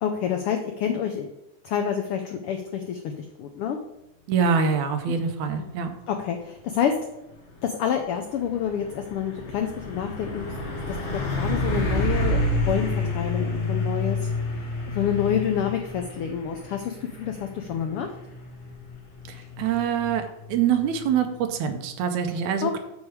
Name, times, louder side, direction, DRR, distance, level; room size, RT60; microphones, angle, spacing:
voice 1, 0.0-1.3 1.6-3.8 6.1-6.9 7.6-14.3 14.9-18.1 22.6-22.8, left 8 dB, 85° left, 5 dB, 1.2 m, -28 dB
voice 2, 4.3-5.9 19.3-22.8, right 7 dB, 80° right, 7 dB, 2.2 m, -25 dB
Truck, 7.3-21.6, left 2 dB, 60° left, 2.6 m, -30 dB
7.2 x 6.6 x 4.7 m, 0.88 s
omnidirectional pair, 3.3 m